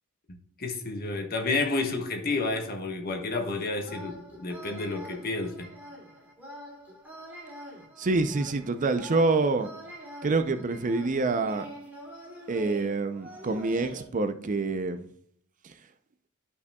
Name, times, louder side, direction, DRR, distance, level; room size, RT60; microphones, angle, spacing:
voice 1, 0.3-5.7, left 3 dB, 45° left, 1.3 m, -30 dB
sound 1, 3.8-14.0, equal, 10° right, 2.3 m, -45 dB
voice 2, 8.0-9.7 10.2-11.7 12.5-15.0, right 3 dB, 40° right, 0.5 m, -26 dB
11.5 x 5.6 x 2.3 m
head